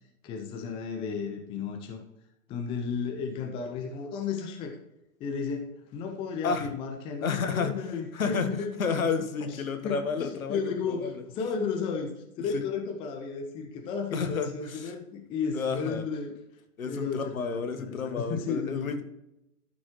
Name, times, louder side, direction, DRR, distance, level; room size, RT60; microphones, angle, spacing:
voice 1, 0.2-2.0 2.5-4.8 5.2-9.0 9.4-9.6 9.8-16.4 16.8-18.9, left 5 dB, 10° left, 3 dB, 0.6 m, -33 dB
voice 2, 7.2-7.8 8.1-8.5 8.8-10.7 11.0-11.1 12.5-12.6 14.1-14.9 15.5-16.0 16.8-19.0, left 5 dB, 70° left, 7 dB, 1.5 m, -30 dB
13.0 x 6.2 x 3.1 m, 0.87 s
figure-of-eight pair, 120°, 43 cm